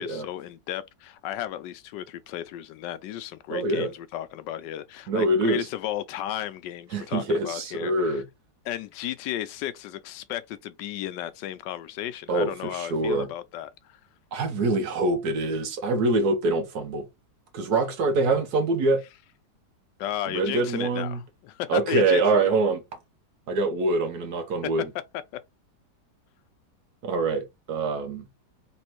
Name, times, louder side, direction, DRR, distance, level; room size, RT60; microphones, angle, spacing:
voice 1, 0.0-8.2 8.6-14.0 20.0-22.5 24.6-24.7, left 12 dB, 80° left, 1.2 m, -34 dB
voice 2, 3.5-3.9 5.1-5.6 6.9-8.2 12.3-13.3 14.3-17.1 17.5-19.0 20.3-21.2 21.7-22.8 23.5-24.9 27.0-28.2, right 2 dB, 65° right, 1.3 m, -24 dB
3.5 x 3.1 x 4.4 m
omnidirectional pair, 1.9 m